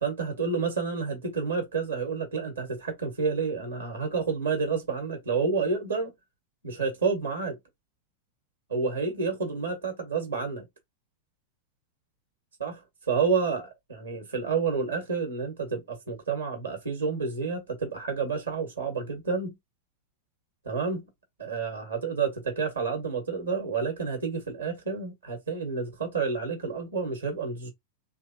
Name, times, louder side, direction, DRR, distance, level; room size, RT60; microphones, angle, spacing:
voice 1, 0.0-6.1 6.6-7.6 8.7-10.7 12.6-12.8 13.1-19.5 20.7-21.0 21.4-27.7, right 5 dB, 75° right, 1.8 m, -29 dB
3.7 x 2.9 x 2.9 m
figure-of-eight pair, 90°, 0 cm